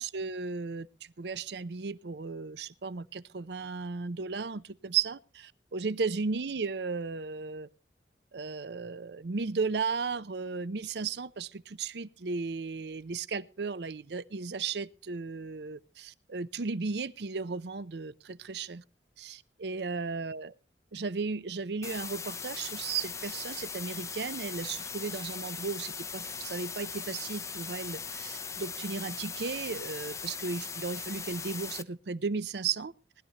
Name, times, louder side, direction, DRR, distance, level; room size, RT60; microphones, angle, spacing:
voice 1, 0.0-7.7 8.3-18.8 19.2-20.5 20.9-32.9, right 4 dB, 70° right, 0.6 m, -35 dB
sound 1, 21.8-31.8, left 5 dB, 15° left, 0.5 m, -39 dB
19.5 x 12.0 x 3.0 m
head